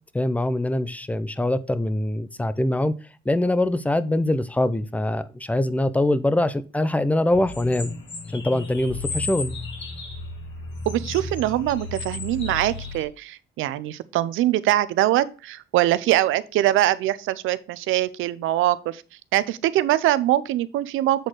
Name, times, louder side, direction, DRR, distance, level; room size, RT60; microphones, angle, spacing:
voice 1, 0.1-2.9 3.3-7.9 8.3-9.6, left 1 dB, 5° left, 0.6 m, -23 dB
sound 1, 7.3-13.0, left 3 dB, 65° left, 2.2 m, -34 dB
voice 2, 10.9-19.0 19.3-21.3, right 14 dB, 90° right, 0.6 m, -23 dB
7.9 x 4.2 x 4.8 m
cardioid pair, 90°, 20 cm